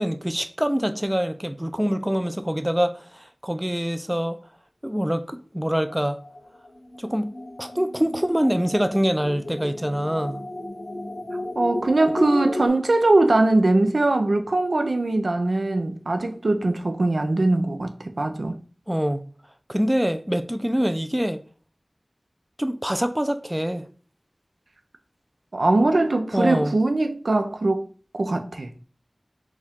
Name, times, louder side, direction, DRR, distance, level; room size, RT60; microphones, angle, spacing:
voice 1, 0.0-4.4 4.8-6.2 7.0-7.3 7.6-10.4 18.9-19.2 19.7-21.4 22.6-23.8 26.3-26.7, equal, 10° right, 0.4 m, -25 dB
sound 1, 5.9-12.7, left 1 dB, 85° left, 0.7 m, -34 dB
voice 2, 11.6-18.6 25.5-27.9 28.1-28.7, right 2 dB, 90° right, 0.4 m, -21 dB
4.4 x 2.3 x 3.6 m
wide cardioid pair, 45°, 0 cm